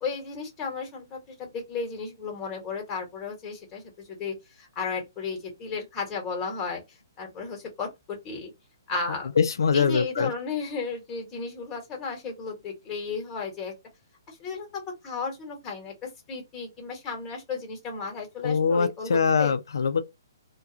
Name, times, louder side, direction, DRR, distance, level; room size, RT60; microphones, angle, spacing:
voice 1, 0.0-6.8 7.2-8.5 8.9-9.3 9.7-13.7 14.3-19.5, left 4 dB, 15° left, 1.1 m, -34 dB
voice 2, 9.4-10.3 18.4-20.0, left 6 dB, 80° left, 0.4 m, -23 dB
2.4 x 2.3 x 2.7 m
hypercardioid pair, 155°, 2 cm